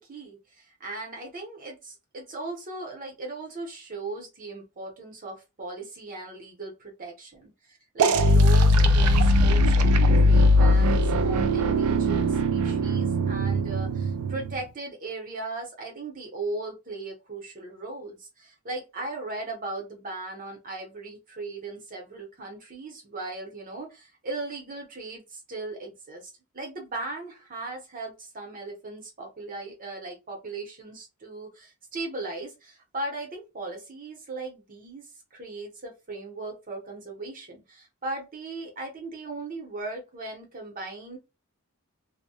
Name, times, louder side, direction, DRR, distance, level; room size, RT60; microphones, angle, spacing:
voice 1, 0.1-41.2, right 2 dB, 40° right, 1 dB, 0.8 m, -38 dB
sound 1, 8.0-14.6, equal, 75° right, 0.3 m, -20 dB
2.2 x 2.1 x 2.7 m, 0.27 s
head